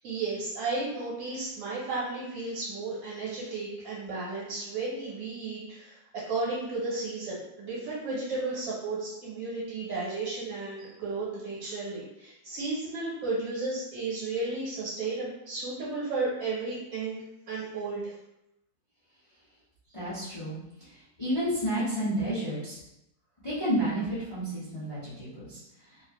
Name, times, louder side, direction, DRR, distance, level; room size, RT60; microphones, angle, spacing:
voice 1, 0.0-6.0 6.3-18.1, right 3 dB, 85° right, -8 dB, 1.7 m, -33 dB
voice 2, 19.9-20.5 21.2-22.8 23.4-25.6, right 1 dB, 45° left, -11 dB, 0.4 m, -30 dB
3.3 x 2.1 x 2.4 m, 0.85 s
omnidirectional pair, 2.0 m